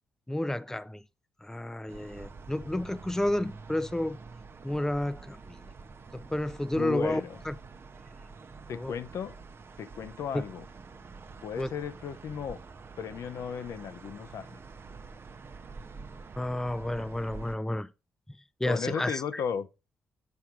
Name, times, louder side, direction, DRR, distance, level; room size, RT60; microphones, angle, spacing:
voice 1, 0.3-1.0 1.4-4.2 4.6-5.6 6.1-7.2 7.5-7.6 8.7-8.9 10.3-10.4 11.6-11.7 16.4-17.9 18.6-19.2, left 1 dB, 10° left, 0.5 m, -31 dB
sound 1, 1.9-17.6, right 4 dB, 45° right, 0.7 m, -47 dB
voice 2, 6.7-7.4 8.7-9.4 9.8-10.7 11.4-12.6 13.0-14.6 18.6-19.7, left 7 dB, 65° left, 0.6 m, -35 dB
7.3 x 4.7 x 4.4 m
hypercardioid pair, 45°, 6 cm